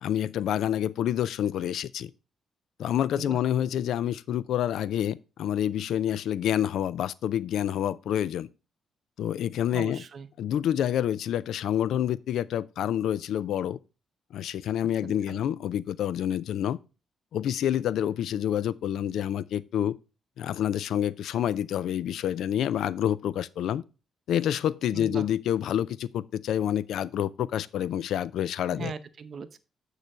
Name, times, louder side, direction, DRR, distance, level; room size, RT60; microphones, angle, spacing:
voice 1, 0.0-2.1 2.8-8.5 9.2-10.0 10.4-13.8 14.3-16.8 17.3-19.9 20.4-23.8 24.3-28.9, left 10 dB, 75° left, 0.3 m, -28 dB
voice 2, 9.7-10.3 15.0-15.4 24.9-25.3 28.7-29.6, right 5 dB, 55° right, 0.7 m, -39 dB
8.8 x 3.2 x 5.3 m
cardioid pair, 70°, 0 cm